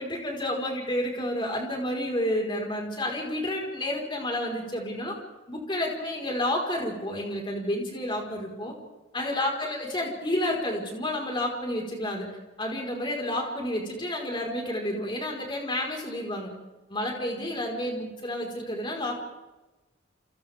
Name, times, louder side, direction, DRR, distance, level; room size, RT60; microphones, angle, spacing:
voice 1, 0.0-5.1 5.5-8.7 9.1-12.3 12.6-16.5 16.9-19.2, left 1 dB, 25° left, 0 dB, 5.0 m, -30 dB
29.5 x 29.0 x 3.7 m, 1.1 s
head